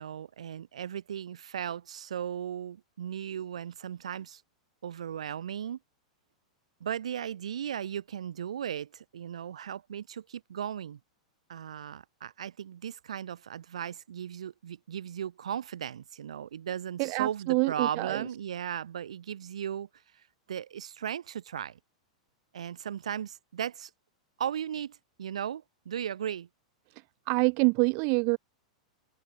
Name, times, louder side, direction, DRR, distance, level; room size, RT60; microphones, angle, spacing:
voice 1, 0.0-4.4 4.8-5.8 6.8-11.0 11.5-19.9 20.1-21.8 22.5-23.9 24.4-26.5, right 9 dB, 65° right, 4.0 m, -36 dB
voice 2, 17.0-18.2 27.3-28.4, right 40 dB or more, 45° right, 1.5 m, -26 dB
figure-of-eight pair, 95°, 4 cm